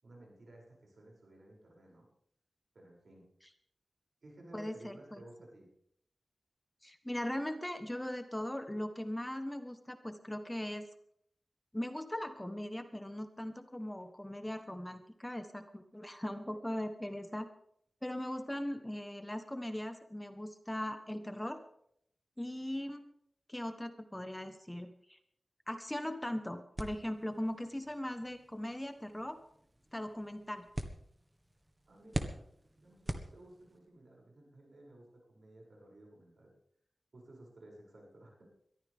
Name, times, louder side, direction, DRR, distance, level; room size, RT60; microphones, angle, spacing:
voice 1, 0.0-2.1 2.7-3.3 4.2-5.7 31.9-36.5 37.1-38.5, right 1 dB, 65° right, -2 dB, 7.1 m, -56 dB
voice 2, 4.5-5.2 6.8-10.9 11.7-17.5 18.0-21.6 22.4-23.0 23.5-25.2 25.7-29.4 29.9-30.7, left 1 dB, 10° left, 8 dB, 1.2 m, -39 dB
sound 1, 26.8-33.9, right 1 dB, 20° right, 1.6 m, -44 dB
22.5 x 13.5 x 3.6 m, 0.70 s
wide cardioid pair, 80°, 0 cm